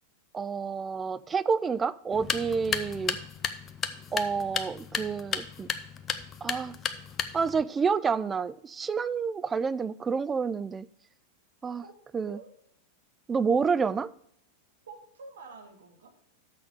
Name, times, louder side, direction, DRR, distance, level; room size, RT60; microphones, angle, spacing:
voice 1, 0.3-3.2 4.1-5.7 6.4-6.7 7.3-10.9 11.6-11.8 12.1-12.4 13.3-14.1, right 5 dB, 20° right, 0.3 m, -29 dB
sound 1, 2.1-7.6, left 6 dB, 25° left, 0.7 m, -34 dB
voice 2, 14.8-16.3, right 4 dB, 65° right, 1.5 m, -48 dB
6.7 x 6.4 x 6.7 m
figure-of-eight pair, 90°, 0 cm